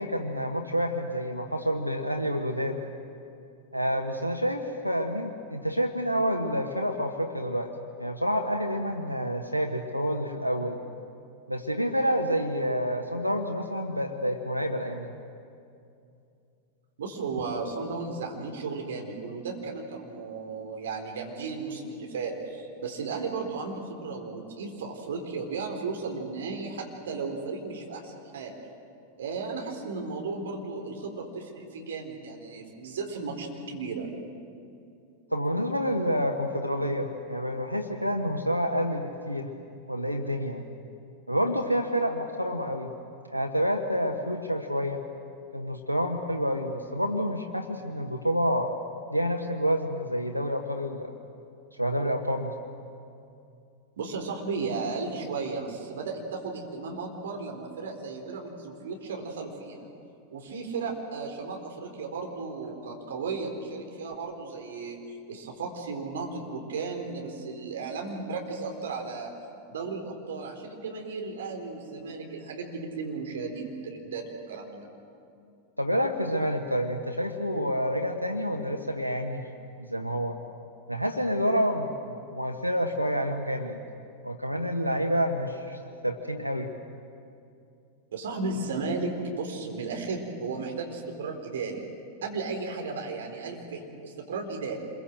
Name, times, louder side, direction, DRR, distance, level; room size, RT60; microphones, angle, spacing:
voice 1, 0.0-2.8 3.7-7.7 8.0-10.8 11.5-15.1 35.3-39.5 39.9-40.7 41.3-42.9 43.3-45.0 45.5-48.7 49.1-51.1 51.8-52.6 75.8-79.5 79.8-80.4 80.9-83.8 84.2-86.7, equal, 90° left, 3 dB, 1.2 m, -28 dB
voice 2, 17.0-28.5 29.2-34.1 54.0-59.9 60.3-65.0 65.3-69.3 69.7-74.9 88.1-91.8 92.2-94.8, right 4 dB, 60° right, 2 dB, 4.2 m, -35 dB
27.0 x 22.5 x 7.8 m, 2.5 s
figure-of-eight pair, 90°, 0 cm